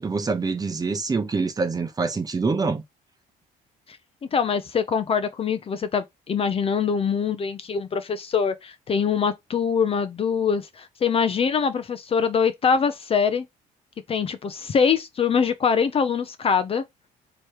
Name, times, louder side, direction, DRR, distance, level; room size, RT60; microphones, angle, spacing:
voice 1, 0.0-2.8, right 4 dB, 20° right, 0.8 m, -25 dB
voice 2, 4.3-13.4 14.1-16.8, left 6 dB, 35° left, 0.6 m, -23 dB
3.2 x 3.0 x 4.6 m
cardioid pair, 110°, 17 cm